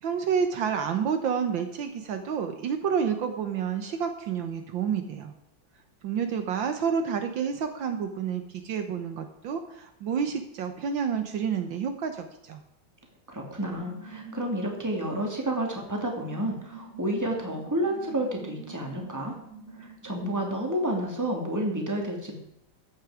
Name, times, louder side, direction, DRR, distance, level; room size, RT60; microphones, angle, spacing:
voice 1, 0.0-5.3 6.0-12.6, right 7 dB, 70° right, 7 dB, 1.7 m, -29 dB
voice 2, 13.3-19.4 19.8-22.4, right 1 dB, 10° right, 1 dB, 2.4 m, -30 dB
sound 1, 13.7-21.1, right 4 dB, 45° right, 3.7 m, -45 dB
14.0 x 8.9 x 4.9 m, 0.80 s
omnidirectional pair, 2.2 m